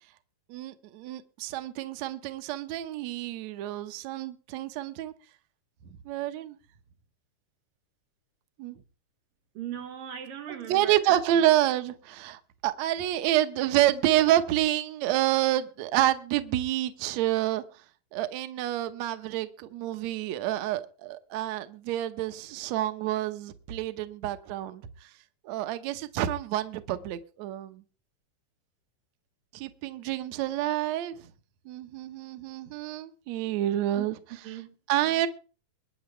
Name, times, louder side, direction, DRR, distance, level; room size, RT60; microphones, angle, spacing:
voice 1, 0.5-5.1 6.1-6.6 8.6-8.8 10.5-17.6 18.1-24.8 25.5-27.8 29.5-31.2 31.7-34.2 34.9-35.3, right 13 dB, 65° right, 2.1 m, -28 dB
voice 2, 9.6-11.2 34.0-34.1 34.4-34.7, right 9 dB, 90° right, 3.6 m, -38 dB
23.5 x 10.0 x 3.4 m
omnidirectional pair, 3.8 m